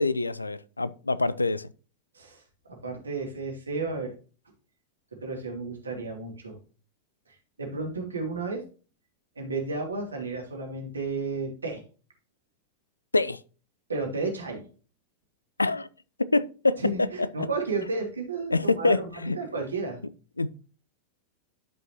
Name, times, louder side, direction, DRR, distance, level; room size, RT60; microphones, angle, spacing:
voice 1, 0.0-1.7 13.1-13.4 15.6-15.9 16.2-16.8 17.2-17.3 18.5-19.4 20.4-20.5, left 3 dB, 80° left, 0.4 m, -25 dB
voice 2, 2.8-4.1 5.2-6.6 7.6-8.6 9.4-11.8 13.9-14.6 16.8-20.0, right 3 dB, 75° right, 2.5 m, -32 dB
12.0 x 5.4 x 2.8 m
figure-of-eight pair, 90°, 0 cm